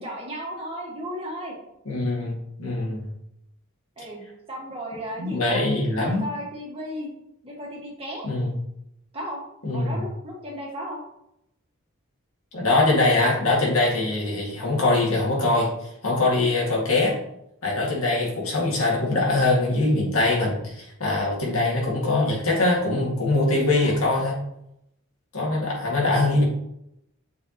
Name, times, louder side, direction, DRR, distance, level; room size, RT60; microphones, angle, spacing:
voice 1, 0.0-1.6 4.0-5.6 6.0-7.1 7.4-8.3 9.1-9.4 9.7-11.0 23.8-24.1, equal, 25° right, -4 dB, 1.7 m, -35 dB
voice 2, 1.9-2.3 2.6-3.1 5.2-6.3 8.2-8.6 9.6-10.0 12.5-15.7 16.0-17.2 17.6-24.4 25.3-26.4, left 2 dB, 85° left, -3 dB, 2.1 m, -22 dB
7.0 x 4.5 x 3.0 m, 0.79 s
head